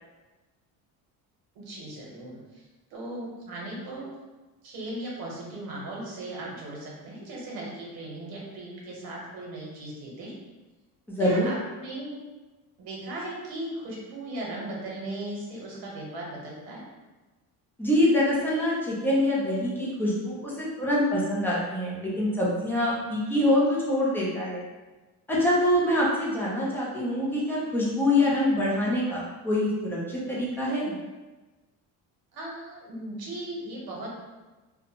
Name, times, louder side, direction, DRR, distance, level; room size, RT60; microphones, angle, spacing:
voice 1, 1.5-2.6 2.9-4.1 4.6-10.3 11.2-12.2 12.8-16.8 32.3-34.1, right 1 dB, 65° right, -3 dB, 0.9 m, -37 dB
voice 2, 11.1-11.5 17.8-24.6 25.3-30.9, left 1 dB, 5° left, -6 dB, 0.4 m, -25 dB
2.4 x 2.1 x 2.8 m, 1.2 s
cardioid pair, 155°, 38 cm